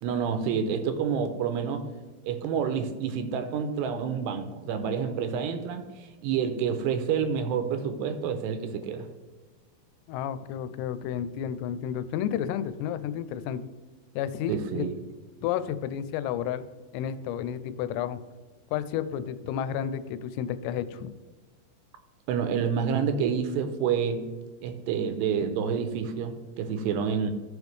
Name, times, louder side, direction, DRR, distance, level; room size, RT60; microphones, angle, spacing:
voice 1, 0.0-1.8 2.2-9.1 14.5-15.0 22.3-24.3 24.6-27.3, right 7 dB, 85° right, 8 dB, 2.7 m, -28 dB
voice 2, 10.1-13.7 14.2-14.9 15.4-16.6 16.9-18.2 18.7-21.1, left 9 dB, 85° left, 12 dB, 2.7 m, -31 dB
14.5 x 5.1 x 3.2 m, 1.3 s
omnidirectional pair, 5.0 m